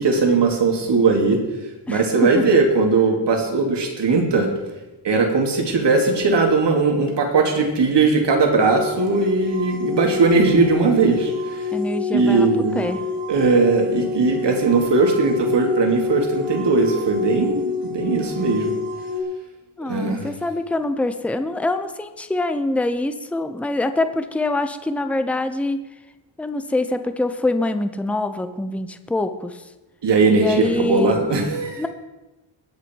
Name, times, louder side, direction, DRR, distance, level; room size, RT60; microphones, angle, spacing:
voice 1, 0.0-1.4 1.9-4.5 5.0-11.6 12.1-12.9 13.3-18.8 19.9-20.3 30.0-31.8, right 4 dB, 55° right, 2 dB, 2.7 m, -19 dB
sound 1, 8.6-19.2, left 5 dB, 25° right, 2.6 m, -27 dB
voice 2, 11.7-12.5 12.7-13.0 19.8-25.8 26.4-29.6 30.3-31.1 31.8-31.9, left 2 dB, 5° left, 9 dB, 0.6 m, -24 dB
21.0 x 8.3 x 4.6 m, 1.1 s
wide cardioid pair, 145°, 49 cm